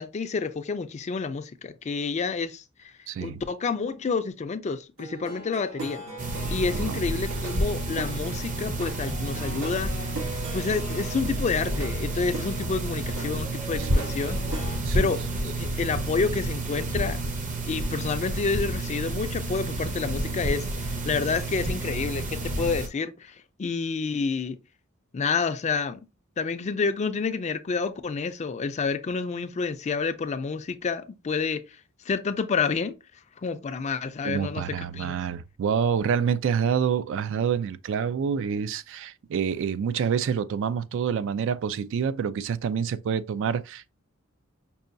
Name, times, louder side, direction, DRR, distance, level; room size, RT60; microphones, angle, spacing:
voice 1, 0.0-2.6 3.2-6.0 6.5-9.9 10.5-14.4 14.9-17.2 17.7-24.6 25.1-26.0 26.4-31.6 32.1-32.9 33.4-34.6 34.9-35.2, left 5 dB, 35° left, 0.4 m, -29 dB
voice 2, 3.1-3.4 6.7-7.0 13.8-13.9 14.9-15.2 34.2-43.9, right 7 dB, 65° right, 0.3 m, -27 dB
Plucked string instrument, 5.0-14.8, right 2 dB, 90° right, 1.8 m, -39 dB
sound 1, 6.2-22.9, right 2 dB, 40° right, 0.7 m, -30 dB
5.4 x 2.2 x 2.6 m
head